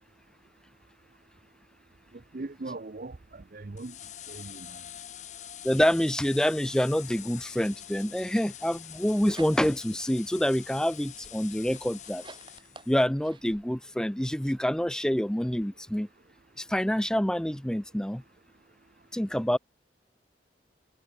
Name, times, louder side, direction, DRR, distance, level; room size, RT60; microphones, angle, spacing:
voice 1, 2.3-4.0 4.3-4.8, right 2 dB, 50° right, 0.6 m, -40 dB
sound 1, 3.8-13.1, left 11 dB, 40° left, 0.8 m, -45 dB
voice 2, 5.6-12.2 12.9-16.1 16.6-18.2 19.1-19.6, equal, 5° left, 0.4 m, -27 dB
sound 2, 8.9-9.9 10.4-13.6, right 3 dB, 25° right, 6.0 m, -52 dB
head